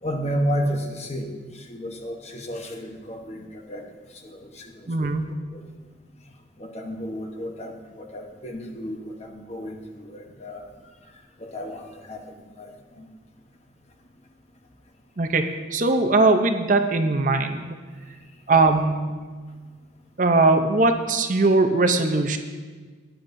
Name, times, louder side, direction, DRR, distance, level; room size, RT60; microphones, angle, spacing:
voice 1, 0.0-4.9 5.5-5.6 6.6-10.7 11.4-13.1, equal, 35° left, 3 dB, 1.0 m, -32 dB
voice 2, 4.9-5.3 15.2-17.8 18.5-19.3 20.2-22.4, right 3 dB, 40° right, 6 dB, 0.6 m, -20 dB
16.5 x 9.9 x 2.6 m, 1.5 s
head